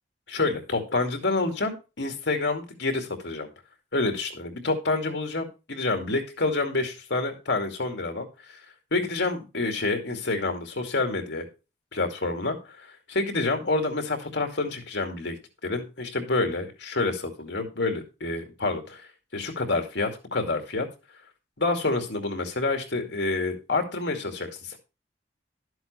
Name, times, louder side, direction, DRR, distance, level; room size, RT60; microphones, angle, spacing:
voice 1, 0.3-3.5 3.9-8.6 8.9-11.5 11.9-15.4 15.6-19.1 19.3-20.9 21.6-24.8, left 3 dB, 70° left, 5 dB, 2.3 m, -28 dB
12.0 x 7.8 x 3.3 m, 0.29 s
head